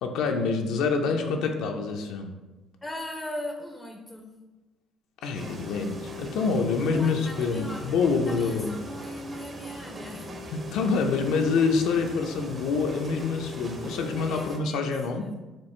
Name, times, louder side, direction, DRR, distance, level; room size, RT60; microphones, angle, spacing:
voice 1, 0.0-2.3 5.2-8.7 10.5-15.3, left 4 dB, 80° left, 3 dB, 0.5 m, -26 dB
voice 2, 2.8-4.4 6.9-8.0 8.3-10.8 14.3-14.9 15.1-15.4, left 1 dB, 15° left, 2 dB, 0.4 m, -39 dB
sound 1, 5.3-14.6, left 1 dB, 35° right, 0.6 m, -40 dB
4.5 x 2.4 x 4.3 m, 1.1 s
cardioid pair, 115°, 0 cm